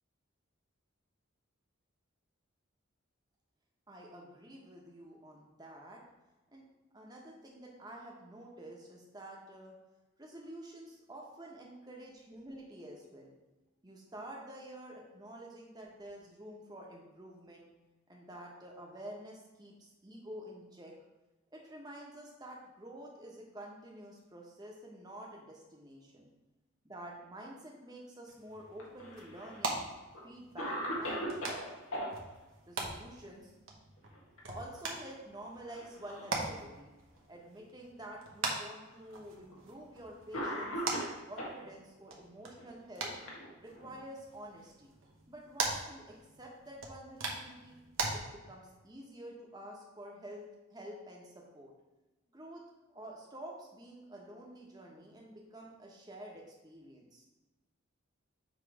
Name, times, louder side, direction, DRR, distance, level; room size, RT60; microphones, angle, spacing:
voice 1, 3.9-6.0 6.5-6.7 6.9-9.7 10.2-13.3 13.8-17.7 18.1-20.9 21.5-26.3 26.8-29.8 30.2-30.7 31.0-31.7 32.7-33.5 34.5-36.9 37.3-40.8 41.2-43.1 43.6-44.9 45.3-47.8 48.1-51.7 52.3-57.3, right 1 dB, 20° right, -2 dB, 1.1 m, -49 dB
sound 1, 28.3-48.1, right 3 dB, 70° right, 1.1 m, -42 dB
Cough, 28.7-29.6 30.1-30.2 30.6-32.1 34.0-34.4 34.7-34.8 35.7-36.4 37.1-37.2 38.3-38.4 39.5-39.7 40.3-41.6 42.5-44.0, equal, 80° left, 1.6 m, -39 dB
7.0 x 3.3 x 4.8 m, 1.1 s
head